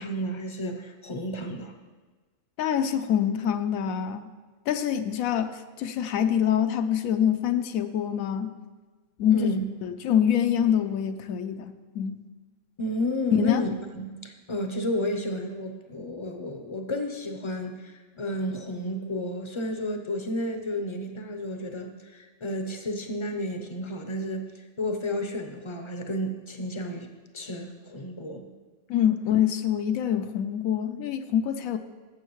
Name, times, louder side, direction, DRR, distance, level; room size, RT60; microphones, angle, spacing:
voice 1, 0.0-1.7 9.3-9.6 12.8-13.7 13.9-28.5, equal, 35° left, 5 dB, 0.5 m, -32 dB
voice 2, 2.6-4.3 4.7-8.5 9.2-9.5 9.8-12.2 13.4-13.6 28.9-31.8, left 9 dB, 85° left, 9 dB, 1.0 m, -25 dB
14.5 x 7.1 x 3.1 m, 1.4 s
omnidirectional pair, 1.4 m